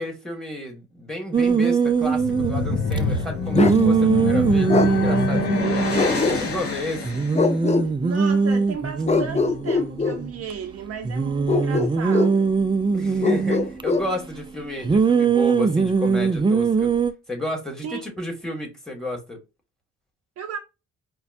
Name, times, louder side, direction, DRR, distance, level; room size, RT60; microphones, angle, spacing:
voice 1, 0.0-5.9 6.2-7.2 12.9-16.9 17.3-19.4, left 1 dB, ahead, 1.7 m, -32 dB
sound 1, 1.3-3.0 3.5-6.4 6.7-6.8 7.0-10.5 11.0-13.8 14.8-17.1, right 5 dB, 15° right, 0.4 m, -21 dB
sound 2, 2.1-7.4, left 5 dB, 50° left, 1.8 m, -26 dB
Bark, 3.5-3.8 4.7-4.9 6.0-6.7 7.3-7.9 9.1-10.2 11.5-12.4 13.2-14.1, left 4 dB, 20° left, 0.7 m, -22 dB
voice 2, 8.0-12.6 17.8-18.0 20.4-20.6, right 7 dB, 50° right, 0.7 m, -34 dB
5.0 x 2.3 x 2.5 m
cardioid pair, 90°, 30 cm